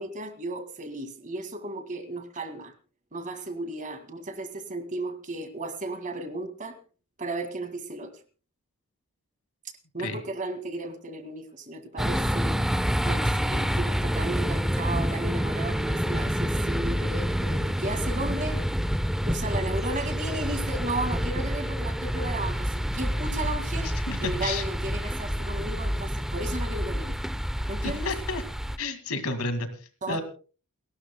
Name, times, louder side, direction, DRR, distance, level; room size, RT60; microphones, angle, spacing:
voice 1, 0.0-2.7 3.1-6.8 7.2-8.1 9.9-12.6 13.0-18.6 19.3-27.2 27.7-28.1 30.0-30.2, right 2 dB, 35° right, 8 dB, 2.1 m, -34 dB
sound 1, 12.0-28.8, equal, ahead, 0.6 m, -28 dB
voice 2, 23.8-24.6 27.8-28.4 28.8-30.2, left 3 dB, 70° left, 9 dB, 2.2 m, -32 dB
29.0 x 12.5 x 2.2 m, 0.37 s
head